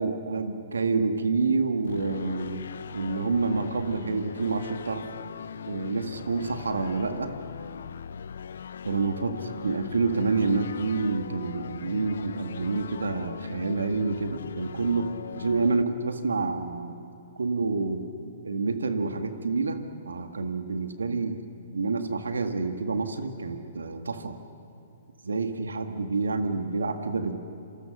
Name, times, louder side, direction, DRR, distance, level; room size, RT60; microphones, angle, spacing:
voice 1, 0.0-2.6 2.9-5.0 5.7-7.3 8.8-17.0 17.4-18.0 18.4-21.4 21.7-24.4 25.2-27.4, right 4 dB, 90° right, 7 dB, 1.9 m, -28 dB
sound 1, 1.8-15.8, left 7 dB, 75° left, 0.6 m, -40 dB
27.5 x 24.0 x 6.6 m, 2.6 s
hypercardioid pair, 130°, 0 cm